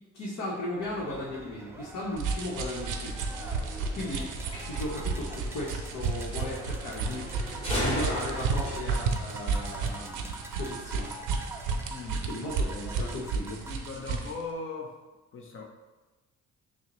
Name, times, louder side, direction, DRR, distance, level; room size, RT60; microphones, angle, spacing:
voice 1, 0.1-3.1 3.9-4.3 4.6-7.3 7.7-11.1 12.3-13.6, left 1 dB, 70° left, -6 dB, 1.0 m, -36 dB
sound 1, 0.8-13.9, right 2 dB, 10° right, 0.4 m, -45 dB
sound 2, 2.2-14.4, right 4 dB, 85° right, 0.6 m, -33 dB
sound 3, 2.6-8.8, equal, 20° left, 1.3 m, -37 dB
voice 2, 11.9-12.2 13.6-15.0 15.3-15.6, left 4 dB, 45° left, 1 dB, 0.8 m, -38 dB
6.2 x 2.1 x 3.0 m, 1.2 s
cardioid pair, 90°, 30 cm